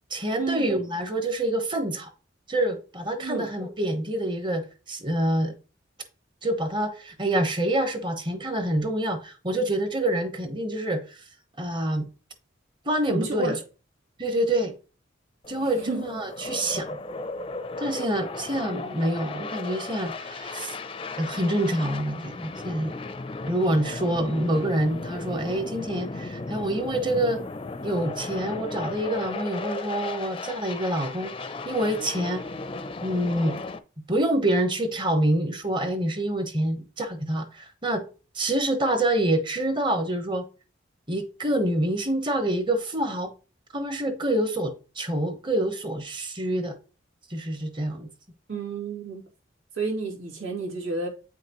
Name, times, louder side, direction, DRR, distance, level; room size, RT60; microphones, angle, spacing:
voice 1, 0.1-2.1 2.5-5.5 6.4-11.2 11.6-12.1 12.8-13.6 14.2-14.7 15.5-16.9 17.8-20.7 21.2-22.9 23.4-27.4 27.8-31.3 31.6-32.4 33.0-33.6 34.1-38.1 38.3-40.5 41.1-43.3 43.7-46.8 47.3-48.1, right 1 dB, 25° right, 1.0 m, -26 dB
voice 2, 13.1-13.5 15.8-16.0 48.5-49.2 49.7-51.1, right 3 dB, 85° right, 2.5 m, -30 dB
sound 1, 15.4-33.8, left 3 dB, 25° left, 0.5 m, -36 dB
8.7 x 5.8 x 3.0 m
head